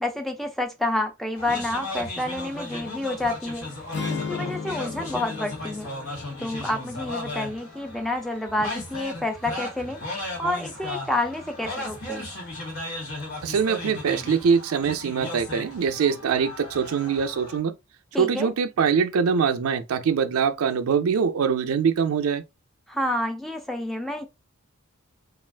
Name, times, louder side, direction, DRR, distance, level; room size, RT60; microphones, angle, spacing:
voice 1, 0.0-3.7 4.1-5.9 6.4-12.2 18.1-18.5 22.9-24.3, left 1 dB, ahead, 0.4 m, -29 dB
sound 1, 1.4-17.6, left 1 dB, 80° left, 1.2 m, -36 dB
sound 2, 3.9-8.1, left 5 dB, 55° left, 0.6 m, -36 dB
voice 2, 13.4-17.7 18.2-22.4, right 6 dB, 80° right, 0.4 m, -23 dB
2.4 x 2.3 x 3.3 m
head